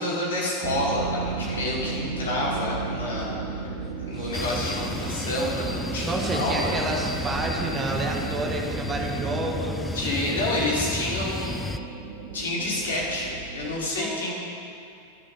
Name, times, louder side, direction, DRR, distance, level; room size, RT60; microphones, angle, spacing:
voice 1, 0.0-3.3 4.0-6.7 9.9-11.5 12.3-14.3, left 1 dB, 65° left, -5 dB, 4.6 m, -28 dB
sound 1, 0.6-13.8, right 5 dB, 50° right, 1.1 m, -35 dB
sound 2, 4.3-11.8, left 2 dB, 10° left, 0.5 m, -32 dB
voice 2, 6.1-10.0 13.9-14.2, right 2 dB, 20° right, 0 dB, 2.0 m, -30 dB
24.5 x 11.0 x 3.9 m, 2.6 s
figure-of-eight pair, 90°, 0 cm